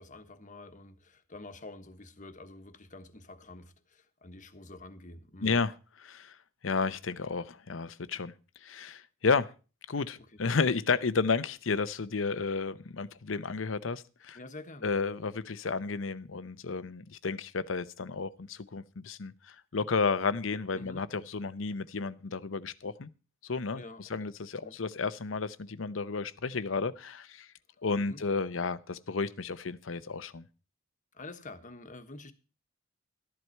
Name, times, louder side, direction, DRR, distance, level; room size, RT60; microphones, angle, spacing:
voice 1, 0.0-5.6 10.2-10.3 14.3-14.9 20.7-21.1 23.7-24.3 24.6-24.8 28.0-28.2 31.1-32.3, left 2 dB, 40° left, 1.3 m, -48 dB
voice 2, 5.4-5.7 6.0-6.3 6.6-8.3 8.6-9.5 9.9-14.4 14.8-23.1 23.4-23.8 24.1-27.5 27.8-30.5, left 4 dB, 75° left, 0.7 m, -32 dB
13.5 x 11.0 x 4.5 m
head